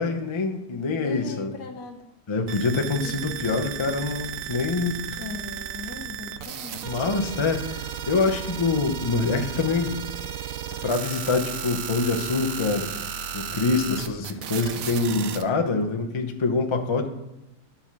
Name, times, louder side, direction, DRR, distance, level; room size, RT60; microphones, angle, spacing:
voice 1, 0.0-1.5 2.3-5.2 6.8-10.0 10.8-12.9 13.3-17.1, left 3 dB, 45° left, 4 dB, 0.3 m, -25 dB
voice 2, 0.9-2.0 2.7-3.6 5.2-7.0, left 4 dB, 75° left, 3 dB, 1.6 m, -39 dB
sound 1, 2.5-15.4, right 8 dB, 65° right, 0.9 m, -34 dB
10.5 x 4.3 x 6.0 m, 0.90 s
omnidirectional pair, 1.7 m